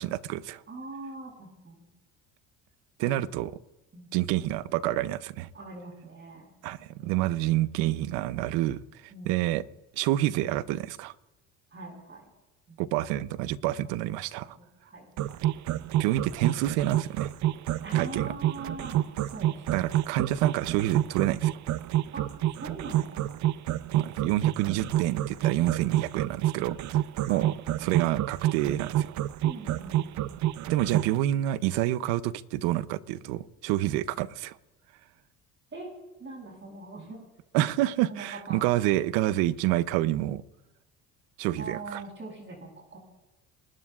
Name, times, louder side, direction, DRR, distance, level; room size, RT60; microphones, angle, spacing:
voice 1, 0.0-0.6 3.0-3.5 4.1-5.5 6.6-8.8 9.3-9.6 10.0-11.1 12.8-14.6 16.0-17.3 17.9-18.3 19.7-21.6 23.9-27.0 27.3-27.5 27.8-29.1 30.7-34.6 37.5-40.4 41.4-42.0, right 14 dB, 85° right, 0.8 m, -28 dB
voice 2, 0.7-1.8 3.0-3.2 3.9-4.1 5.5-6.5 6.8-7.3 9.1-9.5 11.7-12.2 12.7-12.8 14.4-15.1 17.8-19.9 22.1-22.3 22.6-23.4 23.9-24.2 27.3-27.5 29.4-30.4 33.8-34.0 35.7-35.9 36.2-37.2 38.1-38.7 41.6-43.0, right 3 dB, 35° right, 8.0 m, -42 dB
sound 1, 15.2-31.1, right 13 dB, 55° right, 0.6 m, -28 dB
28.0 x 20.5 x 2.4 m
supercardioid pair, 90°, 35 cm